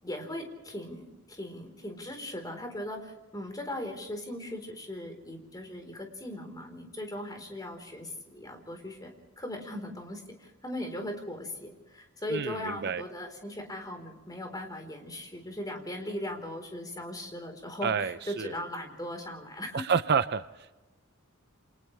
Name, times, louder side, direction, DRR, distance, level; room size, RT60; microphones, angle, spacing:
voice 1, 0.0-19.8, left 1 dB, 20° left, 3 dB, 4.2 m, -39 dB
voice 2, 12.3-13.0 17.8-18.6 19.7-20.4, right 6 dB, 50° right, 12 dB, 0.6 m, -28 dB
29.5 x 27.0 x 3.4 m, 1.1 s
head